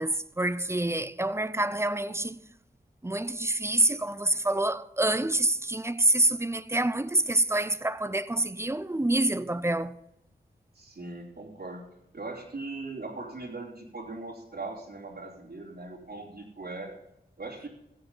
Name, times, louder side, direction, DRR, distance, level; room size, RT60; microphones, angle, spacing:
voice 1, 0.0-2.4 3.0-10.0, right 1 dB, 15° right, 0.6 m, -27 dB
voice 2, 10.7-11.8 12.1-16.9 17.4-17.7, right 3 dB, 60° right, 3.2 m, -39 dB
16.5 x 8.0 x 5.6 m
wide cardioid pair, 65°, 17 cm